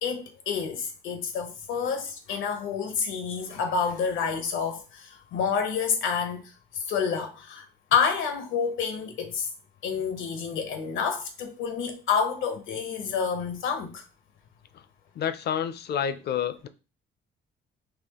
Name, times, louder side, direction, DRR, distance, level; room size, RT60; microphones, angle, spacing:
voice 1, 0.0-6.4 6.9-7.6 7.9-9.5 9.8-14.0, left 6 dB, 85° left, 0.8 m, -28 dB
voice 2, 15.2-16.7, left 8 dB, 55° left, 0.5 m, -29 dB
4.2 x 2.7 x 2.9 m
cardioid pair, 90°, 20 cm